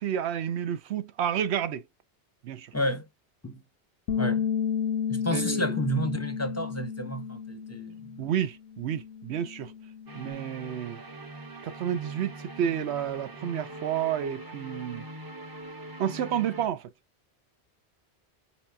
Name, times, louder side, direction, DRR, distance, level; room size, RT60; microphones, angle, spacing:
voice 1, 0.0-1.8 2.4-2.7 4.1-4.3 5.3-5.7 8.2-9.7 10.1-11.0 11.6-15.0 16.0-16.9, right 9 dB, 85° right, 0.9 m, -30 dB
voice 2, 2.7-3.1 3.4-3.6 4.2-4.4 5.1-8.2, equal, 20° left, 0.6 m, -31 dB
Bass guitar, 4.1-8.4 8.7-10.3, left 7 dB, 90° left, 0.9 m, -32 dB
sound 1, 10.1-16.7, right 2 dB, 25° right, 0.7 m, -42 dB
4.2 x 4.1 x 2.2 m
omnidirectional pair, 1.1 m